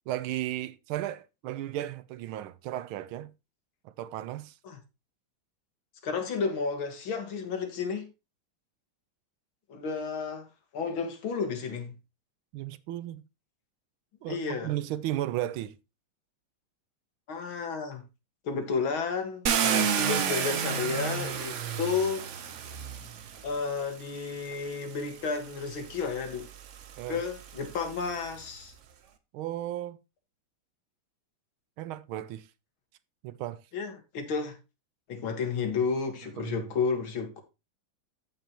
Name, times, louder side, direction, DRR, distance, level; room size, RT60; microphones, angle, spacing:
voice 1, 0.1-3.3 3.8-4.6 12.5-13.2 14.2-15.7 19.6-20.0 27.0-27.2 29.3-30.0 31.8-32.5 33.2-33.6 36.4-36.7, right 13 dB, 85° right, 1.5 m, -35 dB
voice 2, 6.0-8.1 9.7-10.5 10.7-11.9 14.3-14.7 17.3-18.0 18.4-19.5 20.0-22.3 23.4-26.5 27.1-28.7 33.7-34.6 35.1-37.4, left 5 dB, 80° left, 2.5 m, -32 dB
Car, 19.5-23.6 24.5-24.6 25.1-28.4, right 7 dB, 65° right, 0.7 m, -31 dB
15.0 x 5.3 x 2.9 m
omnidirectional pair, 2.2 m